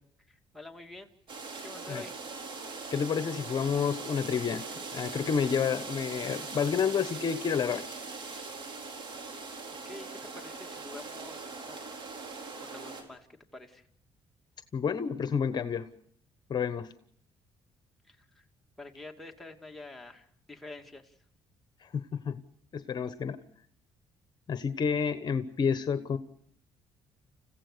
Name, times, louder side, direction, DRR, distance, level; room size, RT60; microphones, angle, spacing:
voice 1, 0.3-1.1 1.6-2.1 9.8-10.1 10.3-12.0 12.6-13.3 13.5-13.8 18.0-18.4 18.8-21.2, left 2 dB, ahead, 1 dB, 2.4 m, -47 dB
sound 1, 1.3-13.0, right 4 dB, 55° right, 4.4 m, -41 dB
voice 2, 2.9-4.6 4.9-8.0 14.7-15.9 16.5-16.9 21.8-22.4 22.7-23.4 24.5-26.2, left 6 dB, 45° left, 11 dB, 1.1 m, -29 dB
29.5 x 15.5 x 6.8 m, 0.65 s
cardioid pair, 95°, 10 cm